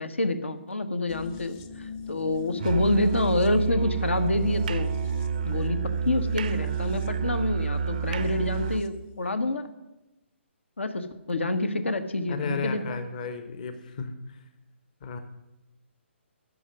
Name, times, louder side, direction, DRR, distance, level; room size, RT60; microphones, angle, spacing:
voice 1, 0.0-4.9 5.4-5.8 6.0-9.7 10.8-13.0, left 2 dB, 70° left, 10 dB, 1.3 m, -27 dB
sound 1, 1.1-9.0 9.3-9.4, left 5 dB, 20° left, 0.7 m, -43 dB
Musical instrument, 2.6-8.9, right 6 dB, 40° right, 0.5 m, -29 dB
voice 2, 12.3-14.1 15.0-15.2, left 5 dB, 40° left, 9 dB, 1.1 m, -34 dB
12.5 x 6.2 x 9.5 m, 1.0 s
figure-of-eight pair, 135°, 7 cm